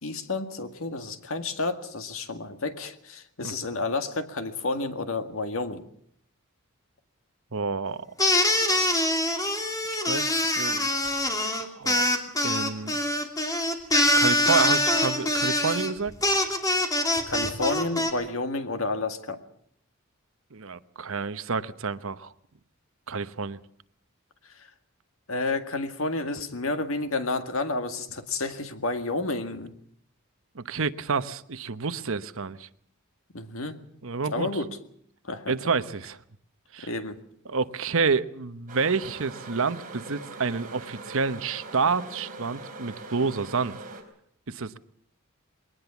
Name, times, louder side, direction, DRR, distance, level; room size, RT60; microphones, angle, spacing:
voice 1, 0.0-5.8 17.3-19.4 24.5-24.7 25.3-29.8 33.3-33.8 34.3-34.8 35.2-35.5 36.8-37.2, left 3 dB, 70° left, 8 dB, 2.0 m, -30 dB
voice 2, 7.5-8.0 10.1-10.9 11.6-12.2 12.4-13.0 14.2-16.1 20.5-22.3 23.1-23.6 30.5-32.7 34.0-34.5 35.5-36.2 36.7-36.9 37.5-43.7 44.5-44.9, right 4 dB, 65° right, 13 dB, 1.0 m, -29 dB
sound 1, 8.2-18.1, left 1 dB, 15° left, 2.7 m, -24 dB
sound 2, 38.7-44.0, right 2 dB, 40° right, 4.6 m, -42 dB
21.5 x 19.0 x 7.2 m, 0.64 s
head